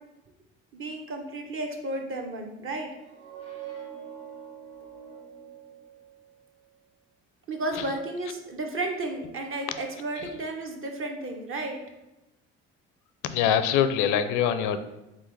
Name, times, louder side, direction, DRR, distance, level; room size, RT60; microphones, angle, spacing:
voice 1, 0.7-2.9 7.5-11.8, right 2 dB, 40° right, 2 dB, 0.9 m, -33 dB
sound 1, 3.0-6.5, right 9 dB, 70° right, 1.2 m, -44 dB
voice 2, 13.2-14.8, left 9 dB, 75° left, 11 dB, 0.5 m, -23 dB
3.7 x 3.7 x 3.3 m, 0.97 s
supercardioid pair, 75°, 31 cm